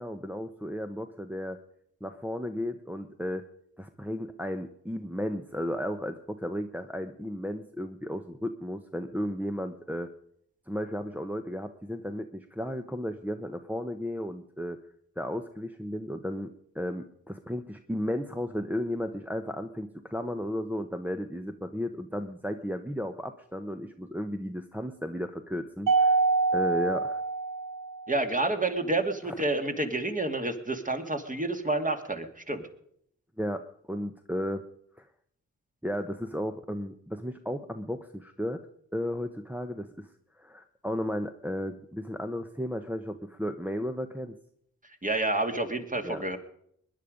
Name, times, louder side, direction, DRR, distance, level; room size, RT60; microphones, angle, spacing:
voice 1, 0.0-1.6 2.0-3.4 3.8-10.1 10.7-14.8 15.2-26.2 26.5-27.2 29.2-29.3 33.4-34.6 35.0-35.1 35.8-38.7 38.9-40.1 40.3-44.4 46.0-46.2, equal, 5° right, 6 dB, 1.0 m, -34 dB
Mallet percussion, 25.9-28.3, right 4 dB, 60° right, 1.4 m, -26 dB
voice 2, 28.1-32.6 45.0-46.4, right 2 dB, 20° right, 5 dB, 2.2 m, -29 dB
21.0 x 10.0 x 5.2 m, 0.70 s
supercardioid pair, 40°, 35 cm